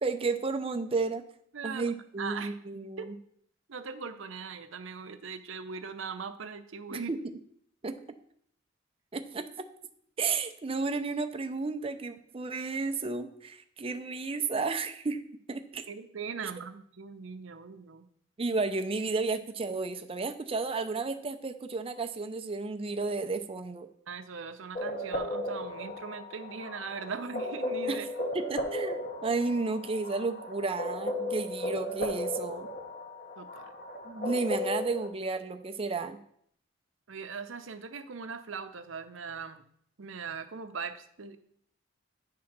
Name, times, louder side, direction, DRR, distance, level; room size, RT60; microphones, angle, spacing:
voice 1, 0.0-1.2 1.6-3.1 6.9-7.2 7.8-8.0 9.1-9.7 10.2-15.2 15.5-15.8 18.4-23.9 27.9-28.0 28.3-32.7 34.0-36.2, right 4 dB, 30° right, 7 dB, 0.5 m, -32 dB
voice 2, 1.5-1.9 2.2-2.6 3.0-3.1 3.7-7.1 15.9-18.1 24.1-28.1 33.4-33.7 37.1-39.6 40.0-41.4, right 5 dB, 75° right, 9 dB, 0.7 m, -40 dB
sound 1, 24.8-35.1, left 1 dB, 45° left, 1.1 m, -35 dB
9.5 x 3.8 x 5.9 m, 0.67 s
head